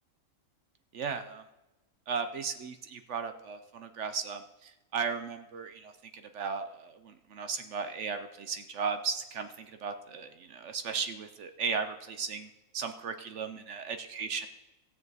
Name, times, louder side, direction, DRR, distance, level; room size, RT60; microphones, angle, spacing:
voice 1, 0.9-1.4 2.1-14.5, right 5 dB, 60° right, 8 dB, 0.9 m, -36 dB
17.5 x 6.9 x 4.0 m, 0.98 s
omnidirectional pair, 1.5 m